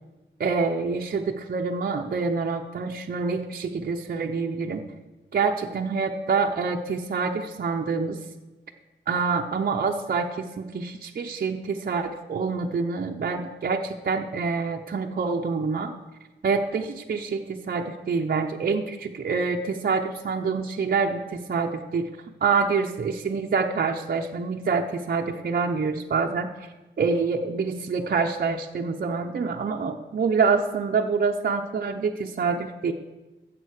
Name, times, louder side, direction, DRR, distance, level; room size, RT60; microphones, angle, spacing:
voice 1, 0.4-4.8 5.3-8.2 9.1-15.9 16.4-22.1 22.4-26.5 27.0-32.9, right 5 dB, 50° right, 2 dB, 0.8 m, -26 dB
14.0 x 7.8 x 6.5 m, 1.1 s
wide cardioid pair, 155°, 20 cm